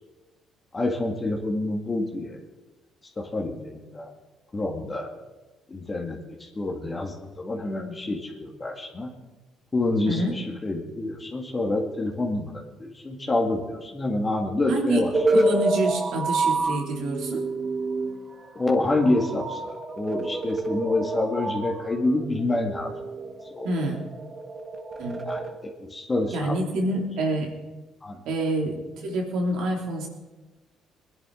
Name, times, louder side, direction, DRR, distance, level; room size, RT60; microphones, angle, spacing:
voice 1, 0.7-2.4 3.2-4.1 4.5-5.1 5.7-9.1 9.7-15.1 18.5-22.9 23.5-23.7 25.3-25.4 25.8-26.6 28.0-28.2, left 2 dB, 30° left, 0 dB, 2.2 m, -27 dB
voice 2, 10.1-10.4 14.7-15.0 15.3-17.4 23.6-24.0 25.0-25.2 26.3-27.5 28.2-30.1, right 1 dB, 75° right, 0 dB, 3.1 m, -27 dB
sound 1, 15.1-25.5, right 2 dB, 30° right, 1.6 m, -28 dB
21.0 x 10.5 x 3.9 m, 1.2 s
supercardioid pair, 60°, 0 cm